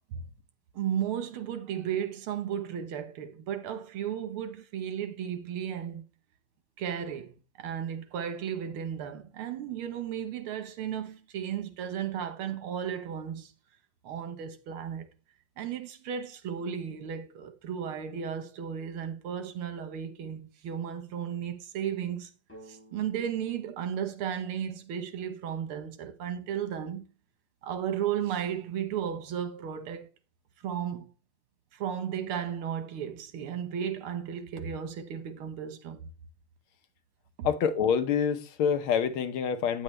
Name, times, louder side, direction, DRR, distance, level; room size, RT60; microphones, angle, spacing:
voice 1, 0.8-6.1 6.8-13.5 14.0-15.1 15.6-22.3 22.7-27.0 27.6-30.1 30.6-31.1 31.7-36.1 37.4-37.5, right 9 dB, 80° right, 1.9 m, -34 dB
sound 1, 22.5-26.2, right 1 dB, 5° left, 3.8 m, -57 dB
voice 2, 37.4-39.8, left 7 dB, 80° left, 1.7 m, -26 dB
9.1 x 8.7 x 3.2 m
omnidirectional pair, 2.3 m